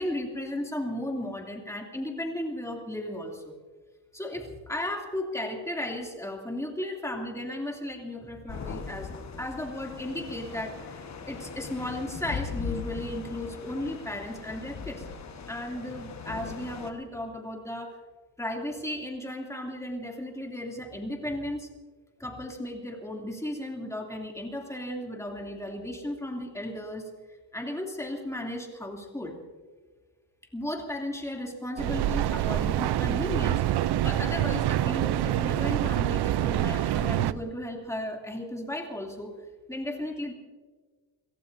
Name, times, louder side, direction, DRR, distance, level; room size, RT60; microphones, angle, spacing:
voice 1, 0.0-3.6 4.1-9.1 9.4-15.1 15.5-18.0 18.4-21.7 22.2-27.1 27.5-29.4 30.5-39.3 39.7-40.3, left 1 dB, 5° left, 0 dB, 2.7 m, -35 dB
sound 1, 8.5-16.9, left 5 dB, 35° left, 1.4 m, -39 dB
Mechanical fan, 31.8-37.3, right 13 dB, 55° right, 0.6 m, -26 dB
29.5 x 17.5 x 2.7 m, 1.4 s
cardioid pair, 130°, 46 cm